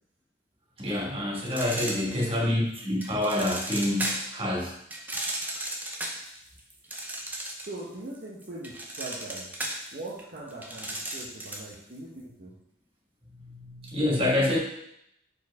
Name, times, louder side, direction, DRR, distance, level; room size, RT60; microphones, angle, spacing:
voice 1, 0.8-4.7 13.3-14.6, left 1 dB, 25° right, -5 dB, 1.5 m, -27 dB
sound 1, 1.5-2.5 3.0-4.4 4.9-7.8 8.1-11.7, right 1 dB, 10° right, 0.6 m, -34 dB
voice 2, 1.9-2.7 7.7-9.4 9.9-12.5, right 2 dB, 45° right, -6 dB, 0.9 m, -41 dB
4.6 x 4.6 x 4.7 m, 0.77 s
head